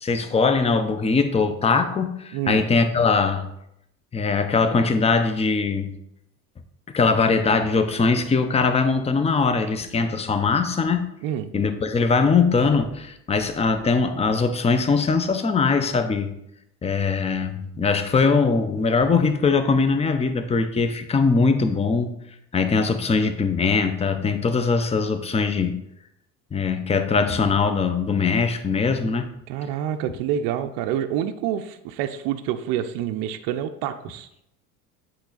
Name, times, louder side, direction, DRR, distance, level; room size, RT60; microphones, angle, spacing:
voice 1, 0.0-3.5 4.1-5.9 6.9-11.1 11.5-16.3 16.8-22.1 22.5-25.8 26.5-29.3, left 4 dB, 15° left, 8 dB, 0.6 m, -21 dB
voice 2, 2.3-2.6 11.2-11.5 29.5-34.3, right 10 dB, 55° right, 7 dB, 0.6 m, -27 dB
7.9 x 3.3 x 3.9 m, 0.79 s
hypercardioid pair, 75°, 44 cm